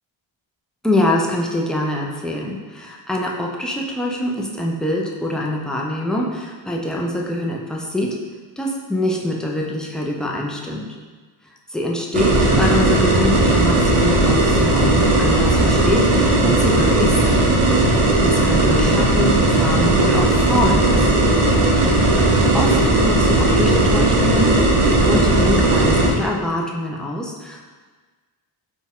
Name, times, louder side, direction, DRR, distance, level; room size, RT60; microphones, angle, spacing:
voice 1, 0.8-8.2 8.6-10.9 11.7-17.6 18.2-21.4 22.1-27.6, left 1 dB, ahead, -2 dB, 0.4 m, -24 dB
sound 1, 12.1-26.1, right 2 dB, 85° right, 0.8 m, -16 dB
4.3 x 2.3 x 3.6 m, 1.4 s
cardioid pair, 85°, 49 cm